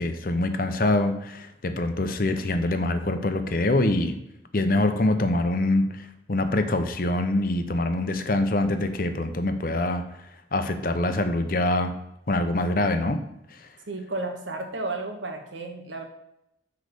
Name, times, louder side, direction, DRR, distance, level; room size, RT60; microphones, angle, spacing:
voice 1, 0.0-4.1 4.5-10.0 10.5-11.9 12.3-13.2 13.5-13.7, left 2 dB, 50° left, 8 dB, 0.7 m, -24 dB
voice 2, 13.9-16.0, right 2 dB, 90° right, 3 dB, 1.4 m, -32 dB
6.3 x 4.8 x 6.7 m, 0.83 s
head